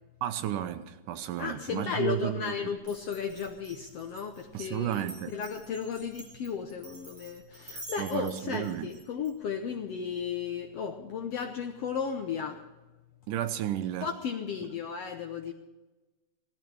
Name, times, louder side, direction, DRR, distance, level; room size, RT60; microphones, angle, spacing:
voice 1, 0.2-2.8 4.5-5.4 8.0-8.9 13.3-14.1, right 11 dB, 80° right, 2.3 m, -33 dB
voice 2, 1.4-5.1 5.3-12.6 14.0-15.5, left 6 dB, 70° left, 1.5 m, -34 dB
Glass, 2.8-9.3, right 2 dB, 50° right, 6.2 m, -48 dB
17.5 x 14.0 x 4.7 m
omnidirectional pair, 3.8 m